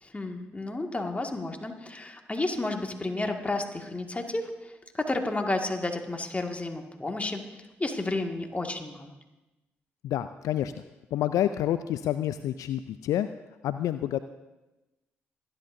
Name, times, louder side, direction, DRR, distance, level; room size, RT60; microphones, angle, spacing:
voice 1, 0.0-7.4 7.8-9.1, left 2 dB, 20° left, 3 dB, 2.0 m, -31 dB
voice 2, 10.0-10.7 11.1-13.3 13.6-14.2, left 11 dB, 70° left, 12 dB, 0.4 m, -28 dB
25.0 x 11.0 x 2.7 m, 1.0 s
hypercardioid pair, 40°, 6 cm